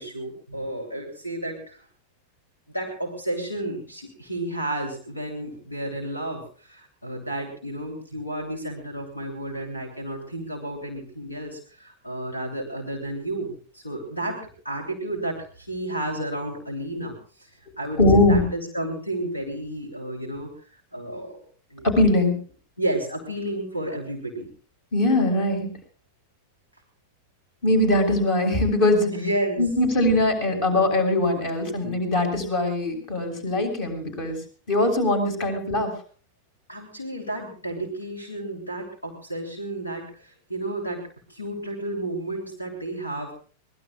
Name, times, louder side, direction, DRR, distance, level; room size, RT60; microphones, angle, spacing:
voice 1, 0.0-1.8 2.7-17.5 17.8-20.5 20.9-21.4 21.7-21.9 22.8-24.5 29.1-29.6 36.7-41.0 41.3-43.3, right 1 dB, 85° left, 4 dB, 3.3 m, -32 dB
voice 2, 18.0-18.4 21.8-22.4 24.9-25.7 27.6-29.1 29.6-34.4 34.7-35.9, left 1 dB, 45° left, 6 dB, 6.1 m, -21 dB
24.0 x 20.0 x 2.4 m, 0.41 s
figure-of-eight pair, 90°, 0 cm